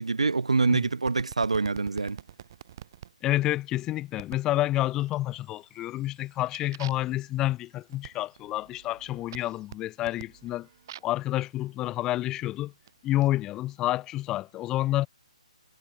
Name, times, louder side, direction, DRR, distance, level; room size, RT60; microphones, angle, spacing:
voice 1, 0.0-2.2, right 4 dB, 65° right, 0.5 m, -25 dB
sound 1, 1.1-3.1 4.2-4.5 5.0-5.5 5.9-11.2 12.0-13.3, right 11 dB, 35° right, 3.5 m, -47 dB
voice 2, 3.2-10.7 11.0-12.7 13.0-15.1, left 15 dB, 15° left, 1.6 m, -29 dB
figure-of-eight pair, 140°, 4 cm